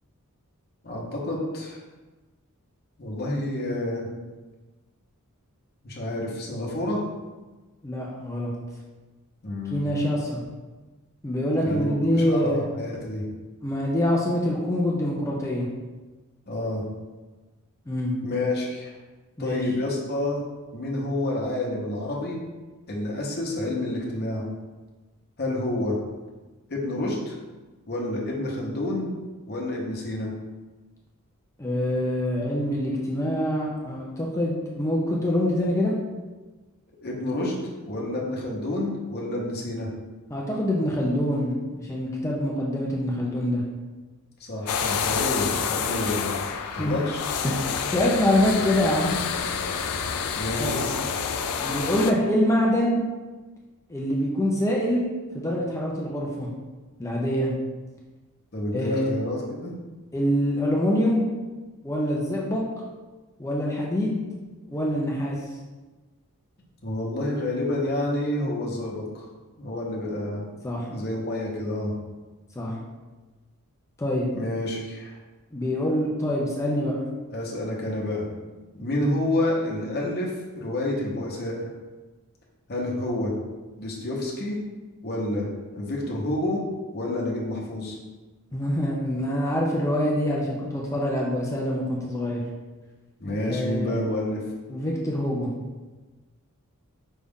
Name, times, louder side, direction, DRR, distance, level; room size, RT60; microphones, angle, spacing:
voice 1, 0.8-1.8 3.0-4.1 5.8-7.0 9.4-9.9 11.6-13.2 16.5-16.8 18.2-18.9 19.4-20.4 20.7-22.4 22.9-24.4 25.4-26.0 26.7-27.4 27.9-29.1 29.5-30.3 37.0-37.6 37.8-39.9 44.4-46.4 46.7-47.3 50.4-51.0 58.5-59.7 66.8-69.2 69.6-70.4 70.9-71.9 74.3-75.2 77.3-78.3 78.7-80.3 80.6-81.6 82.7-83.3 83.8-84.6 85.0-86.6 86.9-88.0 93.2-94.4, left 1 dB, 45° left, -2 dB, 0.9 m, -29 dB
voice 2, 7.8-8.5 9.7-10.4 11.2-12.6 13.6-15.7 17.9-18.1 19.4-19.7 31.6-35.9 40.3-43.6 46.8-47.0 47.4-49.2 50.6-50.8 51.6-53.0 53.9-55.1 55.3-56.5 57.0-57.5 58.7-59.1 60.1-61.2 61.8-62.6 63.4-64.2 64.7-65.4 70.6-70.9 72.6-72.7 74.0-74.3 75.5-77.0 88.5-92.4 93.5-94.0 94.7-95.5, left 1 dB, 15° left, -3 dB, 0.5 m, -25 dB
sound 1, 44.7-52.1, left 6 dB, 75° left, 0.4 m, -28 dB
5.3 x 2.4 x 3.5 m, 1.2 s
head